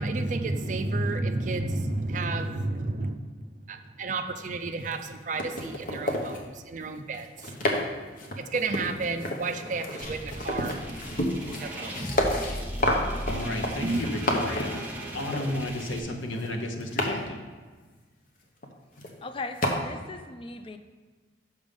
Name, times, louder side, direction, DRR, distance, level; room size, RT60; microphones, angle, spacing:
voice 1, 0.0-3.2 3.7-7.5 8.4-10.7 11.6-11.9 13.8-14.0, right 3 dB, 40° right, 7 dB, 0.4 m, -31 dB
sound 1, 4.8-5.1 5.4-6.5 7.1-7.9 8.2-14.8 15.3-15.5 16.2-17.2 18.6-18.7 19.0-19.2 19.6-19.7, left 1 dB, 45° left, 0.9 m, -30 dB
sound 2, 10.0-16.0, equal, 10° right, 0.9 m, -37 dB
voice 2, 13.3-17.4, left 1 dB, 90° left, 2 dB, 0.9 m, -33 dB
voice 3, 19.2-20.8, left 3 dB, 30° left, 7 dB, 0.3 m, -38 dB
6.2 x 5.2 x 5.2 m, 1.4 s
head